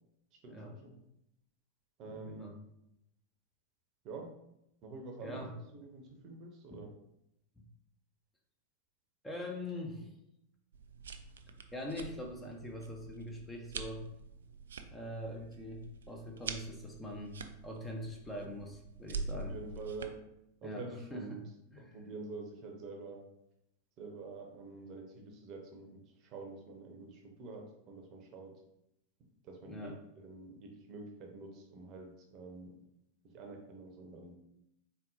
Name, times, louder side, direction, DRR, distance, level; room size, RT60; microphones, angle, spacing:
voice 1, 0.4-1.0 2.0-2.6 4.0-4.3 4.8-6.9 19.3-20.2 20.6-21.4 21.8-23.2 24.0-28.6 29.4-32.7 33.2-34.4, right 3 dB, 35° right, 3 dB, 0.8 m, -47 dB
voice 2, 2.0-2.6 5.2-5.5 6.7-6.8 7.6-7.7 9.2-10.1 11.7-14.0 14.9-17.4 17.6-19.6 20.6-21.4 21.7-22.0 29.7-30.0, left 1 dB, 10° left, 0 dB, 0.7 m, -43 dB
sound 1, 10.7-20.1, right 4 dB, 65° right, 0.3 m, -45 dB
4.3 x 3.8 x 2.7 m, 0.82 s
figure-of-eight pair, 90°, 0 cm